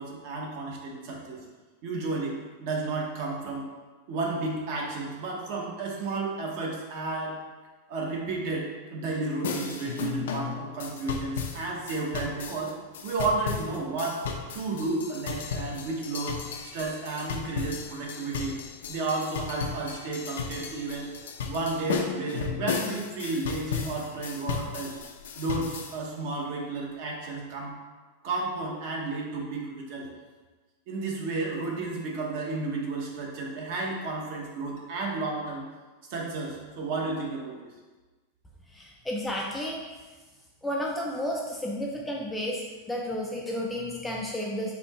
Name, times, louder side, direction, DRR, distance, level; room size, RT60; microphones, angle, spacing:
voice 1, 0.0-1.4 1.8-3.6 4.1-7.3 7.9-12.7 13.0-14.2 14.5-16.4 16.7-18.6 18.9-21.1 21.5-24.9 25.4-27.7 28.2-30.1 30.9-35.6 36.1-37.7, right 3 dB, 45° right, -1 dB, 0.9 m, -32 dB
sound 1, 9.4-26.0, left 6 dB, 75° left, 0.5 m, -35 dB
voice 2, 38.7-39.8 40.6-44.7, left 1 dB, 5° left, -2 dB, 0.3 m, -32 dB
4.3 x 2.8 x 4.1 m, 1.3 s
supercardioid pair, 170°, 0 cm